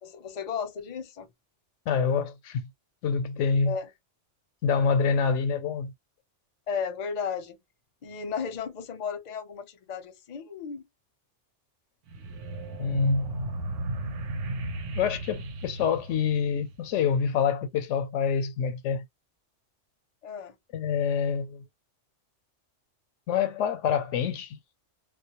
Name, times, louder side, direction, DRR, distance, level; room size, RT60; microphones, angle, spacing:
voice 1, 0.0-1.3 3.6-3.9 6.7-7.6 8.0-10.8 20.2-20.6, left 6 dB, 45° left, 0.6 m, -34 dB
voice 2, 1.9-2.7 3.0-3.7 4.6-5.9 12.8-13.4 14.9-19.0 20.7-21.6 23.3-24.6, left 6 dB, 85° left, 0.9 m, -26 dB
sound 1, 12.1-17.0, right 2 dB, 85° right, 0.9 m, -35 dB
2.2 x 2.0 x 2.8 m
omnidirectional pair, 1.2 m